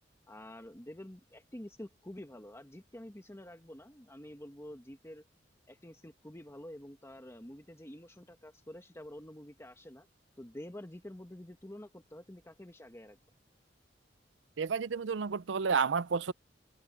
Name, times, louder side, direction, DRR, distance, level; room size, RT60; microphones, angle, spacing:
voice 1, 0.3-5.2 5.7-10.1 10.4-13.2, left 1 dB, 15° left, 1.5 m, -48 dB
voice 2, 14.6-16.3, right 5 dB, 80° right, 0.5 m, -30 dB
head